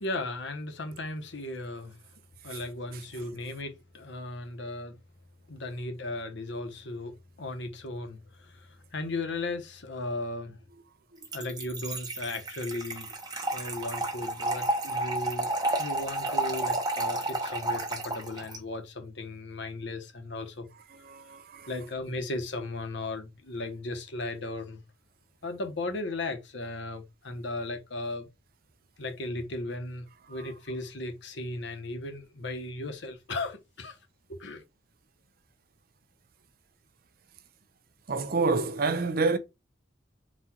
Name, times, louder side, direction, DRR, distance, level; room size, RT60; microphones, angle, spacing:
voice 1, 0.0-2.0 2.4-5.0 5.5-10.6 11.3-13.1 13.5-15.5 15.8-20.7 21.7-24.8 25.4-28.3 29.0-34.0 34.3-34.6, left 2 dB, 60° left, 0.9 m, -36 dB
Trickle dribble / Fill (with liquid), 11.2-18.6, right 2 dB, 20° right, 0.9 m, -31 dB
voice 2, 20.9-21.7 30.3-30.5 38.1-39.4, right 3 dB, 45° right, 0.5 m, -28 dB
4.1 x 2.4 x 4.3 m
head